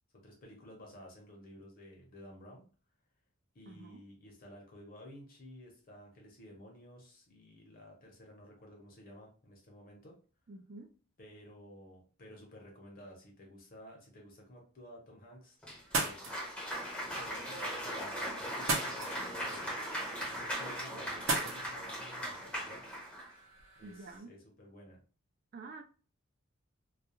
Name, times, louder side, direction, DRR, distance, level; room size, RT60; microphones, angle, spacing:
voice 1, 0.1-2.6 3.5-10.2 11.2-15.6 16.0-16.5 17.1-19.8 20.1-22.8 23.8-25.0, left 1 dB, 45° left, 0.9 m, -53 dB
voice 2, 3.7-4.0 10.5-10.9 23.8-24.3 25.5-25.8, right 3 dB, 45° right, 0.3 m, -48 dB
Cheering / Applause, 15.6-23.3, equal, 5° left, 0.7 m, -39 dB
sound 1, 15.8-24.2, right 3 dB, 70° right, 0.7 m, -40 dB
2.4 x 2.2 x 2.9 m
head